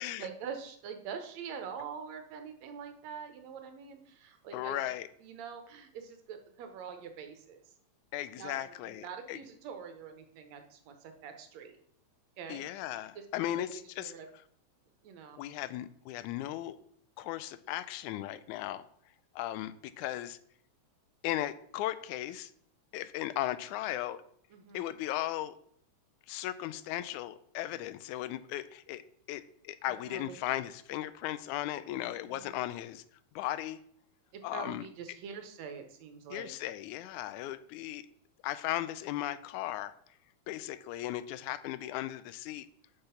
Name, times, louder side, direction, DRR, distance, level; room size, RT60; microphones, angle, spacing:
voice 1, 0.2-4.9 5.2-7.6 8.4-11.8 12.4-12.6 13.2-13.3 13.6-13.7 14.0-14.3 15.0-15.4 24.5-24.9 29.9-30.4 32.1-32.5 34.3-36.6, right 6 dB, 70° right, 6 dB, 2.1 m, -45 dB
voice 2, 4.5-5.1 8.1-9.4 12.5-14.1 15.4-16.8 17.2-18.8 19.4-20.4 21.2-22.5 22.9-24.2 24.7-25.6 26.3-29.0 29.3-33.0 33.4-33.8 34.4-34.9 36.3-38.0 38.4-39.9 40.5-42.7, left 14 dB, 90° left, 14 dB, 2.0 m, -36 dB
6.6 x 5.9 x 5.7 m, 0.65 s
omnidirectional pair, 3.4 m